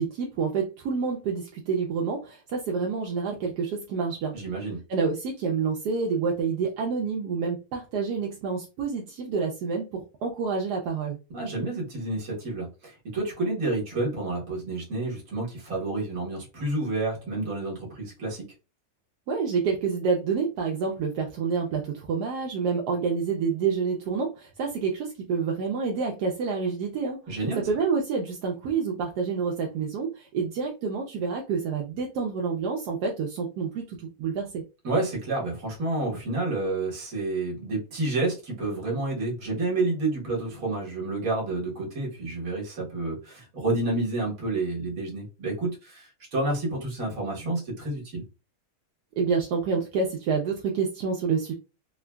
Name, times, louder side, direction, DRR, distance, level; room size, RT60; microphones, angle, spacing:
voice 1, 0.0-4.3 4.9-11.2 19.3-34.6 49.2-51.5, right 5 dB, 80° right, 0 dB, 1.1 m, -28 dB
voice 2, 4.3-4.8 11.3-18.4 27.3-27.7 34.8-48.2, right 2 dB, 60° right, -3 dB, 1.6 m, -29 dB
3.5 x 2.1 x 2.2 m, 0.30 s
omnidirectional pair, 1.7 m